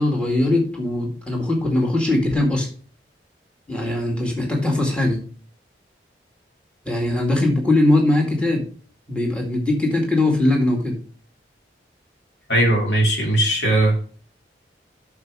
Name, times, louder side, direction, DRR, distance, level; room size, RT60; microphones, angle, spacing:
voice 1, 0.0-2.7 3.7-5.2 6.9-8.7 9.1-10.9, left 2 dB, 5° left, 0 dB, 2.0 m, -20 dB
voice 2, 12.5-14.0, right 1 dB, 85° left, 0 dB, 2.9 m, -18 dB
8.0 x 6.4 x 4.7 m, 0.42 s
head